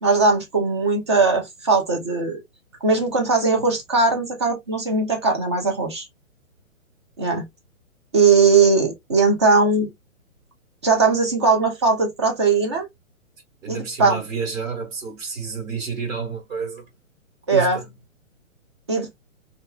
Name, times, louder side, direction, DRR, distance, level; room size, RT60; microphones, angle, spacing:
voice 1, 0.0-2.4 2.8-6.1 7.2-7.4 8.1-9.9 10.8-12.9 13.7-14.2 17.5-17.8 18.9-19.2, right 4 dB, 20° right, 0.4 m, -19 dB
voice 2, 13.6-16.9 17.5-17.9, right 5 dB, 65° right, 1.4 m, -30 dB
2.6 x 2.4 x 2.2 m
hypercardioid pair, 150°, 40 cm